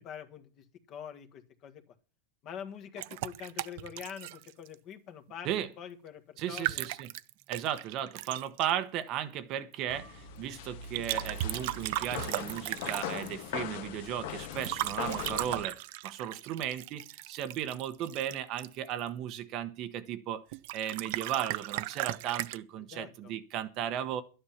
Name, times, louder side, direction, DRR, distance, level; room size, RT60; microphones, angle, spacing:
voice 1, 0.0-1.8 2.4-5.5 5.8-6.9 22.9-23.3, left 8 dB, 30° left, 6 dB, 1.6 m, -45 dB
sound 1, 3.0-4.8 6.4-8.7 10.9-13.3 14.5-19.1 20.5-22.6, right 17 dB, 50° right, 0.6 m, -36 dB
voice 2, 6.4-7.1 7.5-15.8 16.0-20.4 20.7-24.2, right 10 dB, 35° right, 10 dB, 1.0 m, -35 dB
sound 2, 9.9-15.6, left 8 dB, 55° left, 1.6 m, -40 dB
12.0 x 9.9 x 5.8 m, 0.36 s
supercardioid pair, 160°, 0 cm